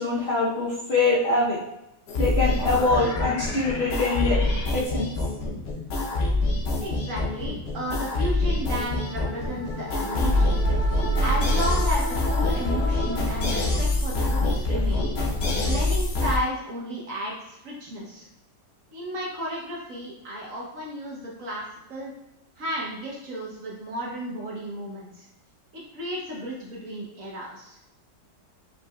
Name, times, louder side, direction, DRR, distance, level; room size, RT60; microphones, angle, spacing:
voice 1, 0.0-1.6 2.2-4.4 4.7-5.1, left 3 dB, 50° left, -7 dB, 0.7 m, -24 dB
sound 1, 2.1-16.4, left 2 dB, 85° left, 0.5 m, -25 dB
voice 2, 6.8-10.9 11.2-15.1 15.6-18.3 18.9-22.1 22.6-25.3 25.7-27.8, equal, 55° right, -3 dB, 1.0 m, -33 dB
5.1 x 3.9 x 2.3 m, 0.90 s
omnidirectional pair, 2.0 m